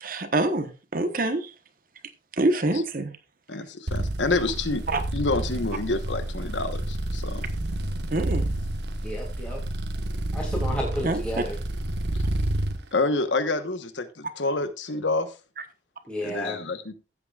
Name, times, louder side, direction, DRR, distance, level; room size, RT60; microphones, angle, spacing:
voice 1, 0.0-1.4 2.4-3.1 4.9-5.0 8.1-8.5 11.0-11.2, right 2 dB, 50° right, 9 dB, 1.1 m, -25 dB
voice 2, 3.5-4.8 5.1-7.5 12.9-15.3 16.2-16.9, left 3 dB, 80° left, 10 dB, 1.2 m, -28 dB
sound 1, 3.9-12.8, right 1 dB, 65° right, 1.3 m, -29 dB
voice 3, 9.0-9.6 10.3-11.6 16.1-16.6, equal, 5° left, -3 dB, 2.7 m, -32 dB
15.5 x 8.5 x 2.4 m, 0.31 s
head